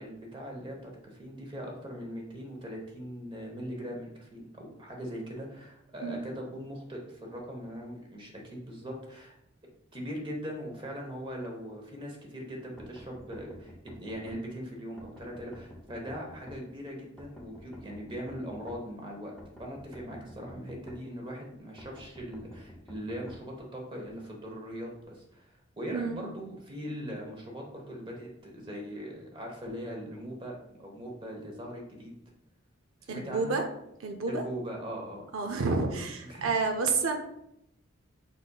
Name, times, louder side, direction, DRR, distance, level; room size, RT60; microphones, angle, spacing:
voice 1, 0.0-9.3 9.9-19.3 19.6-32.1 33.0-33.6 34.3-35.3 36.2-36.5, equal, 25° right, 0 dB, 0.9 m, -40 dB
sound 1, 12.8-14.4 15.0-16.6 17.2-18.8 19.4-21.0 21.8-23.4, left 1 dB, 5° left, 0.6 m, -48 dB
voice 2, 25.9-26.3 33.1-33.6 34.0-34.4 35.3-37.1, right 4 dB, 80° right, 4 dB, 0.5 m, -29 dB
5.2 x 4.2 x 2.3 m, 0.79 s
head